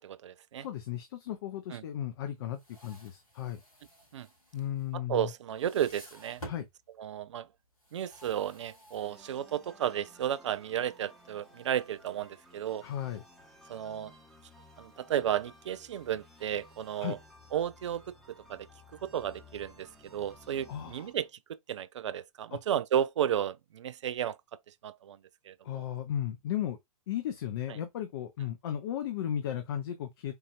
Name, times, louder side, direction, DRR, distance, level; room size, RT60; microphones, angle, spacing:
voice 1, 0.0-0.7 1.7-1.8 4.1-4.3 4.9-6.4 7.0-7.5 7.9-12.9 13.7-14.1 14.8-17.2 17.5-18.0 18.5-18.7 19.0-24.4 24.8-25.2 25.5-25.8, right 10 dB, 55° right, 0.4 m, -33 dB
voice 2, 0.6-3.6 4.5-5.3 6.4-6.6 12.8-13.2 17.0-17.2 20.7-21.1 22.5-22.6 25.6-26.8 27.1-30.3, left 10 dB, 45° left, 0.6 m, -35 dB
sound 1, 2.4-5.2 5.5-6.7 7.8-9.7, right 1 dB, 80° left, 2.6 m, -51 dB
sound 2, 9.0-21.3, left 1 dB, ahead, 0.9 m, -57 dB
4.6 x 2.5 x 2.4 m
figure-of-eight pair, 110°, 18 cm